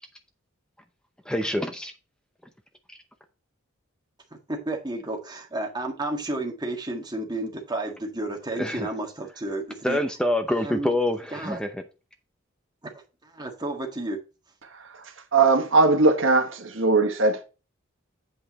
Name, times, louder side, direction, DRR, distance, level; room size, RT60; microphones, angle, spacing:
voice 1, 1.2-1.9 2.9-3.0 8.6-8.9 9.8-11.8, left 1 dB, 5° left, 0.6 m, -26 dB
voice 2, 4.3-10.0 10.6-10.9 11.3-11.6 12.8-12.9 13.2-14.2, right 2 dB, 20° right, 1.6 m, -32 dB
voice 3, 14.6-17.4, right 3 dB, 70° right, 1.4 m, -21 dB
8.0 x 5.6 x 4.1 m
head